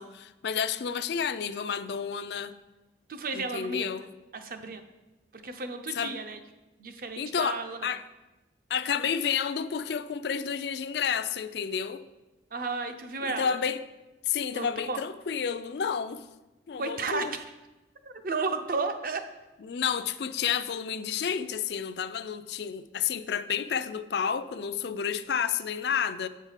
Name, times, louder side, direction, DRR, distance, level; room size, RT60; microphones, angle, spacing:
voice 1, 0.0-2.6 3.3-4.1 5.9-6.1 7.2-8.0 8.7-12.0 13.2-13.8 14.3-16.2 16.7-17.3 19.6-26.3, left 7 dB, 65° left, 0.4 m, -30 dB
voice 2, 3.1-3.9 4.3-4.8 5.3-6.4 6.8-7.8 12.5-13.6 14.5-15.0 16.8-17.4 18.0-19.3, right 4 dB, 50° right, 0.6 m, -33 dB
8.0 x 4.7 x 5.7 m
head